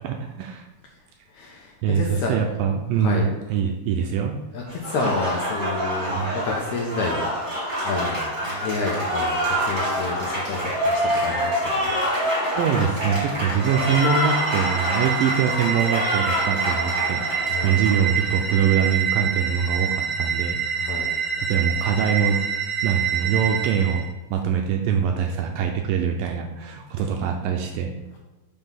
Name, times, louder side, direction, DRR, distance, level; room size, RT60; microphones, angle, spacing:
voice 1, 0.0-0.7 1.8-4.4 6.1-6.3 12.6-20.6 21.1-22.4 22.8-24.1 24.3-27.9, right 7 dB, 80° right, 3 dB, 2.1 m, -23 dB
voice 2, 1.3-2.3 3.0-3.3 4.5-7.2 7.6-8.2 8.6-11.9 17.5-17.7 20.8-21.1, left 3 dB, 70° left, -1 dB, 2.0 m, -29 dB
Applause, 4.7-18.3, equal, 30° right, 0.9 m, -26 dB
sound 1, 13.5-24.1, right 7 dB, 50° right, 1.6 m, -27 dB
6.0 x 5.5 x 5.8 m, 1.1 s
omnidirectional pair, 4.4 m